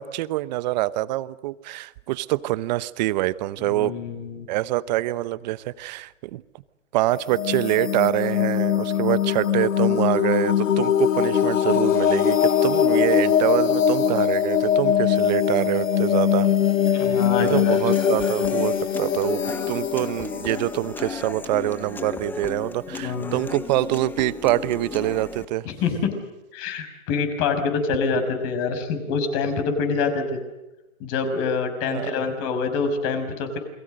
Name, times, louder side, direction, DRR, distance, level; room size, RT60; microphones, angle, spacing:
voice 1, 0.0-3.9 4.5-6.4 6.9-16.5 16.9-17.1 17.4-25.7 31.9-32.1, right 17 dB, 35° right, 17 dB, 1.0 m, -25 dB
voice 2, 3.6-4.5 16.9-17.8 22.9-23.4 25.6-26.1 26.5-30.4 31.0-33.6, left 5 dB, 35° left, 7 dB, 5.8 m, -26 dB
sound 1, 7.1-21.8, left 8 dB, 90° left, 1.5 m, -22 dB
Human voice / Acoustic guitar, 17.4-25.5, left 4 dB, 5° left, 0.8 m, -35 dB
29.5 x 23.0 x 6.5 m, 0.99 s
hypercardioid pair, 145°, 38 cm